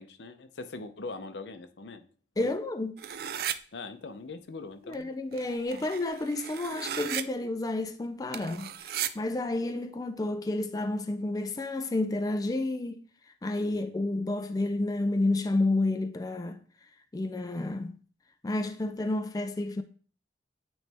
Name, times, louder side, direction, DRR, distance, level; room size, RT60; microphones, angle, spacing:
voice 1, 0.0-2.1 2.4-2.6 3.7-5.1 13.7-13.8, left 3 dB, 75° left, 0.6 m, -42 dB
voice 2, 2.4-2.9 4.9-13.0 13.4-16.6 17.1-18.0 18.4-19.8, left 2 dB, 20° left, 0.4 m, -30 dB
sound 1, 3.0-3.5 4.9-5.0 5.3-7.2 8.3-9.1, right 10 dB, 60° right, 0.4 m, -36 dB
9.1 x 3.2 x 3.4 m
head